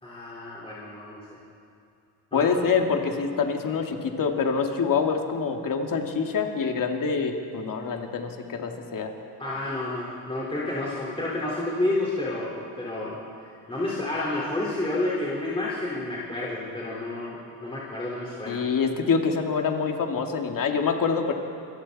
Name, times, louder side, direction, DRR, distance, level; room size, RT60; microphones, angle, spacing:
voice 1, 0.0-1.2 2.3-2.5 9.4-13.2 13.4-18.6, left 2 dB, 15° left, -7 dB, 4.5 m, -30 dB
voice 2, 2.3-9.1 18.5-21.3, left 5 dB, 50° left, 3 dB, 2.4 m, -26 dB
28.0 x 22.0 x 4.3 m, 2.4 s
cardioid pair, 105°, 41 cm